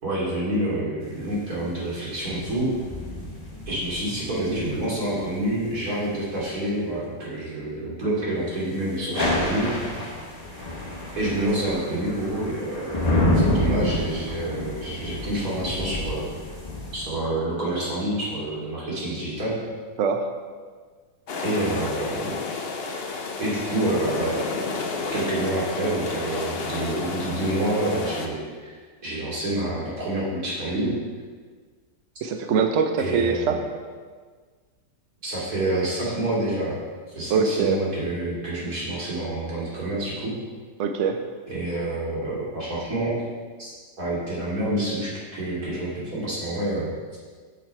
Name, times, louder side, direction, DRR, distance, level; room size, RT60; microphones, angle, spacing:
voice 1, 0.0-2.7 3.7-9.7 10.0-10.2 11.1-12.9 13.3-16.3 16.9-19.6 21.4-22.4 23.4-24.4 25.1-31.0 33.0-33.6 35.2-36.8 37.1-40.3 41.5-43.2 43.6-46.9, right 1 dB, 50° right, -7 dB, 3.0 m, -28 dB
sound 1, 1.0-6.5 8.9-17.1, left 1 dB, 25° left, 1.1 m, -29 dB
voice 2, 20.0-20.3 32.2-33.6 37.3-37.8 40.8-41.2, right 5 dB, 70° right, 5 dB, 0.7 m, -23 dB
sound 2, 21.3-28.3, left 4 dB, 60° left, 0.6 m, -31 dB
7.5 x 7.4 x 4.5 m, 1.5 s
omnidirectional pair, 2.0 m